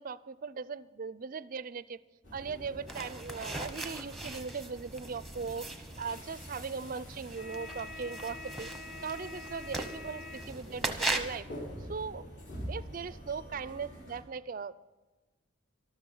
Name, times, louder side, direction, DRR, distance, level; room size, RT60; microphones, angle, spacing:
voice 1, 0.0-2.0 2.3-8.7 9.0-11.5 11.8-12.3 12.7-14.8, right 5 dB, 40° right, 17 dB, 0.4 m, -39 dB
sound 1, 2.2-14.2, left 1 dB, 55° left, 4.2 m, -45 dB
sound 2, 2.9-11.4, right 2 dB, ahead, 0.9 m, -40 dB
13.0 x 12.5 x 5.5 m, 1.2 s
head